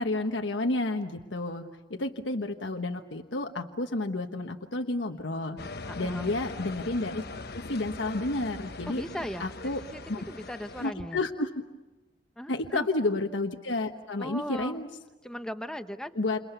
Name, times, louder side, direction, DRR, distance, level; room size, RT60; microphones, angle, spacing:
voice 1, 0.0-5.6 6.0-7.2 7.5-9.0 9.4-9.8 10.1-10.2 10.8-11.5 12.5-14.9 16.1-16.4, left 2 dB, 90° left, 4 dB, 1.3 m, -31 dB
sound 1, 5.6-10.9, left 3 dB, 60° left, 1.0 m, -41 dB
voice 2, 5.9-6.4 8.9-10.0 10.3-11.2 12.4-12.9 14.2-14.8 15.2-16.2, equal, 5° left, 8 dB, 1.0 m, -38 dB
29.5 x 28.0 x 6.9 m, 1.1 s
head